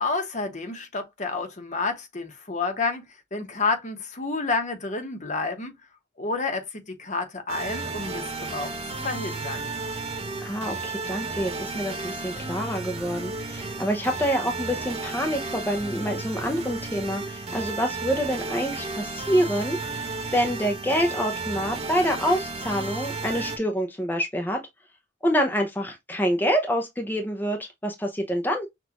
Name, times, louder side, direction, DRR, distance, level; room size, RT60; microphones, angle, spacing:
voice 1, 0.0-3.0 3.3-5.7 6.2-8.2 8.5-9.7, left 3 dB, 40° left, 1.0 m, -29 dB
sound 1, 7.5-23.6, right 3 dB, 35° right, 0.9 m, -33 dB
voice 2, 10.4-24.6 25.2-28.7, equal, 10° left, 0.6 m, -27 dB
6.1 x 2.5 x 2.9 m
head